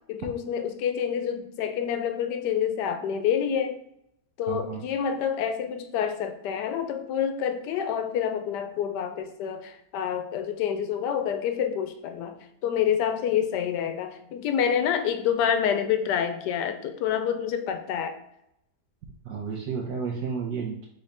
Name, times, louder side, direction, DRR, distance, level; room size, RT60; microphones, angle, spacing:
voice 1, 0.1-3.8 4.4-18.2, left 8 dB, 90° left, 8 dB, 1.2 m, -27 dB
voice 2, 4.5-4.8 19.2-20.8, right 5 dB, 85° right, -3 dB, 1.3 m, -32 dB
4.1 x 3.8 x 3.3 m, 0.79 s
omnidirectional pair, 1.7 m